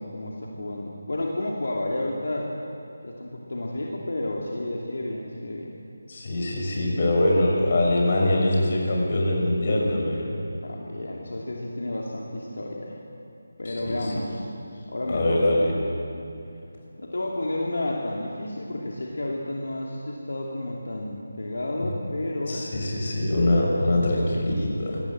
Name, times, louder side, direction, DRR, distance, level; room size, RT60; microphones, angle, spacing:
voice 1, 0.0-2.5 3.0-5.7 10.6-13.0 13.6-14.4 14.9-15.4 17.0-22.7, left 1 dB, 70° left, -2 dB, 2.8 m, -31 dB
voice 2, 6.1-10.3 13.6-14.1 15.1-15.7 21.8-21.9 22.5-25.0, left 1 dB, 40° left, -2 dB, 6.3 m, -23 dB
24.0 x 18.0 x 7.8 m, 2.6 s
figure-of-eight pair, 160°, 0 cm